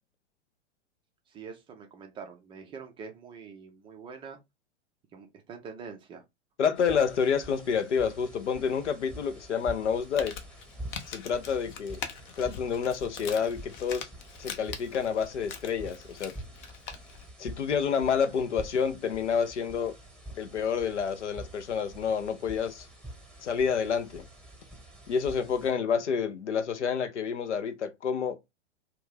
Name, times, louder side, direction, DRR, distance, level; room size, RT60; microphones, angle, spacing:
voice 1, 1.3-4.4 5.1-6.2, right 5 dB, 15° right, 0.4 m, -45 dB
voice 2, 6.6-10.3 11.1-12.0 12.4-14.1 14.4-16.3 17.4-19.9 20.4-22.9 23.4-24.2 25.1-28.4, left 6 dB, 80° left, 0.6 m, -28 dB
sound 1, 6.7-25.7, right 1 dB, 5° left, 1.0 m, -47 dB
Crumpling crinkling, 9.9-17.3, left 7 dB, 40° left, 0.6 m, -43 dB
2.5 x 2.3 x 3.3 m
figure-of-eight pair, 100°, 35 cm